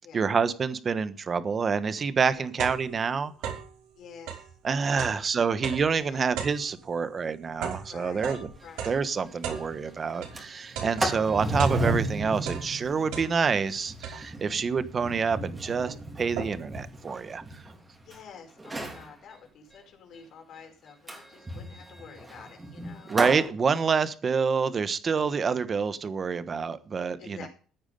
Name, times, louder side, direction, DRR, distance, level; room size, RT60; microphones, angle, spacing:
voice 1, 0.1-3.3 4.6-8.5 8.8-17.4 23.1-27.5, right 5 dB, 30° right, 1.3 m, -27 dB
sound 1, 2.1-3.8 4.2-10.4 10.7-12.1 12.4-13.6 14.0-14.6 15.2-15.3 15.5-16.8, right 8 dB, 90° right, 5.3 m, -38 dB
voice 2, 4.0-4.5 4.9-6.3 7.9-8.3 8.6-9.0 18.0-23.2 27.2-27.5, left 6 dB, 50° left, 5.0 m, -49 dB
Sliding door, 8.6-8.7 9.0-9.1 9.5-9.8 10.2-18.2 18.6-19.1 21.1-23.5, right 1 dB, 15° right, 3.5 m, -34 dB
15.0 x 9.5 x 5.4 m
cardioid pair, 140°, 0 cm